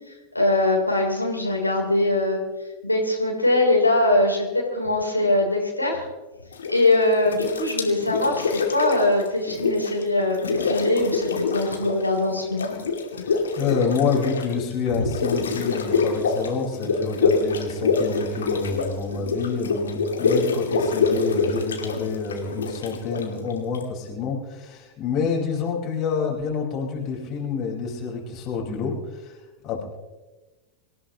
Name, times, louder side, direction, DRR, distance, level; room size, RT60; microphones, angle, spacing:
voice 1, 0.1-2.4 2.8-6.0 6.7-12.7, left 2 dB, 85° left, -1 dB, 3.5 m, -22 dB
sound 1, 6.5-6.9 7.3-10.0 10.3-12.1 12.3-23.8, left 4 dB, 65° left, 2.5 m, -25 dB
voice 2, 13.3-29.4 29.6-29.8, left 5 dB, 35° left, -2 dB, 4.8 m, -28 dB
26.0 x 16.0 x 3.0 m, 1.2 s
figure-of-eight pair, 90°, 0 cm